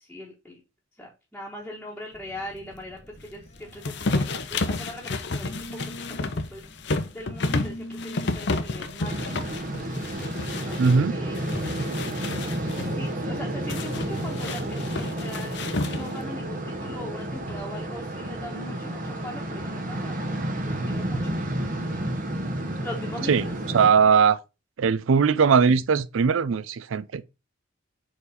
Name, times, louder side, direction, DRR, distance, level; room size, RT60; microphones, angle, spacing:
voice 1, 0.1-0.6 1.0-3.0 3.3-3.4 3.7-5.8 6.2-6.6 7.1-9.4 10.1-11.4 12.8-20.2 20.6-21.4 22.8-23.5, left 1 dB, 5° left, 1.2 m, -40 dB
Telephone, 2.1-10.2, equal, 35° left, 1.0 m, -44 dB
sound 1, 3.8-11.0 11.3-12.9 13.7-16.3, left 3 dB, 55° left, 0.7 m, -31 dB
sound 2, 9.0-23.9, right 1 dB, 40° right, 1.0 m, -31 dB
voice 2, 10.8-11.2 12.9-13.0 23.3-24.4 24.8-27.2, right 6 dB, 75° right, 0.4 m, -20 dB
4.8 x 4.1 x 4.9 m
head